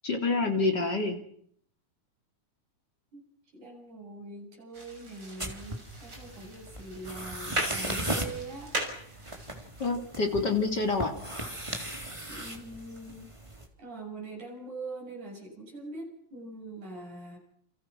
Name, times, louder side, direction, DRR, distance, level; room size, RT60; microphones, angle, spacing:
voice 1, 0.0-1.2 9.8-11.1, left 3 dB, 35° left, 4 dB, 3.4 m, -27 dB
voice 2, 3.5-8.7 9.0-9.3 12.3-13.3 13.8-17.4, right 2 dB, 85° right, 0 dB, 9.3 m, -43 dB
sound 1, 4.7-9.9, right 1 dB, 35° right, 7.3 m, -38 dB
sound 2, 5.4-13.7, right 1 dB, 10° right, 3.5 m, -38 dB
29.5 x 29.5 x 6.3 m, 0.68 s
omnidirectional pair, 3.4 m